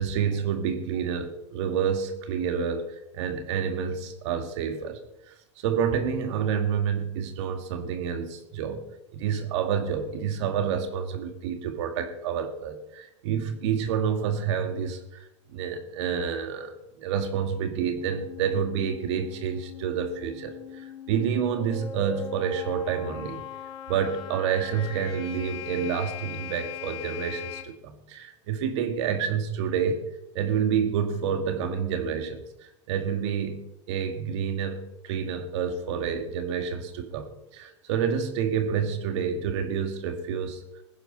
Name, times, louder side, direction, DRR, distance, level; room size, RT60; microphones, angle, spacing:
voice 1, 0.0-5.0 5.3-8.8 9.1-15.3 15.5-16.7 17.0-23.4 23.9-30.0 30.3-33.6 33.9-40.6, right 7 dB, 65° right, 7 dB, 1.8 m, -28 dB
sound 1, 18.0-27.6, left 8 dB, 40° left, 2.4 m, -40 dB
20.0 x 11.0 x 4.1 m, 0.86 s
supercardioid pair, 125°, 16 cm